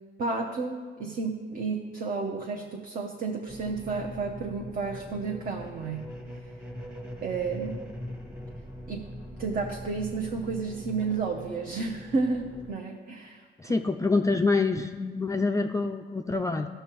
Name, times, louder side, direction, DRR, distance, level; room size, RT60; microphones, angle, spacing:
voice 1, 0.2-6.0 7.2-7.8 8.9-9.1 9.4-13.7, right 4 dB, 45° right, 0 dB, 0.8 m, -32 dB
sound 1, 3.5-12.7, equal, 5° right, 1.1 m, -42 dB
voice 2, 13.6-16.7, left 3 dB, 15° left, 5 dB, 0.3 m, -26 dB
13.5 x 6.7 x 3.1 m, 1.5 s
cardioid pair, 90°, 20 cm